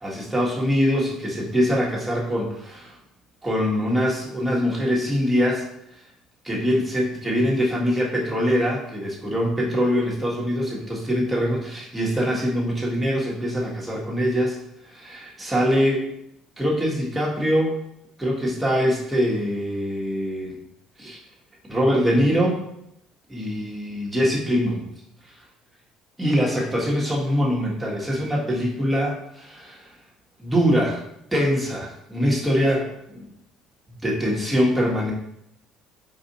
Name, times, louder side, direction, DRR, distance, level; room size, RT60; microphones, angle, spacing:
voice 1, 0.0-3.0 3.4-5.6 6.4-14.6 14.8-16.1 16.6-17.8 18.2-20.6 21.0-21.2 21.6-22.6 23.3-24.9 26.2-29.9 30.4-31.0 31.3-33.3 34.0-35.1, equal, 5° right, -4 dB, 1.3 m, -23 dB
4.9 x 2.6 x 4.0 m, 0.79 s
cardioid pair, 120°, 0 cm